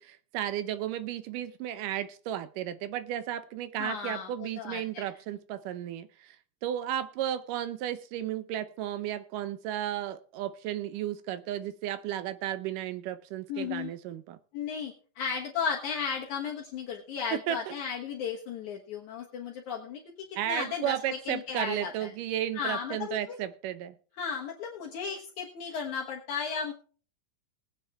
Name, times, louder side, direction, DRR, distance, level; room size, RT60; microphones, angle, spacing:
voice 1, 0.0-6.4 6.6-14.4 17.3-17.7 20.4-24.0, right 11 dB, 80° right, 12 dB, 2.4 m, -34 dB
voice 2, 3.8-5.1 13.5-13.9 14.5-22.1 22.5-23.4 24.2-26.7, left 6 dB, 65° left, -1 dB, 2.6 m, -35 dB
19.0 x 9.2 x 3.5 m, 0.41 s
omnidirectional pair, 3.8 m